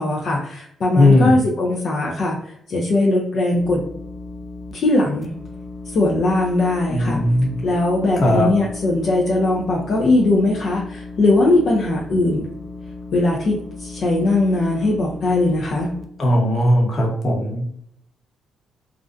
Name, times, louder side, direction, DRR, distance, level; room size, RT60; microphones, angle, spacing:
voice 1, 0.0-3.8 4.7-5.3 5.9-7.2 7.6-12.5 13.1-15.9, left 2 dB, 55° left, -3 dB, 0.5 m, -20 dB
voice 2, 0.9-1.4 6.9-7.5 8.2-8.5 16.2-17.6, left 1 dB, 40° left, 0 dB, 0.9 m, -17 dB
sound 1, 3.5-4.7 5.2-16.0, left 3 dB, 5° right, 0.4 m, -36 dB
2.5 x 2.1 x 2.4 m, 0.71 s
cardioid pair, 90°, 0 cm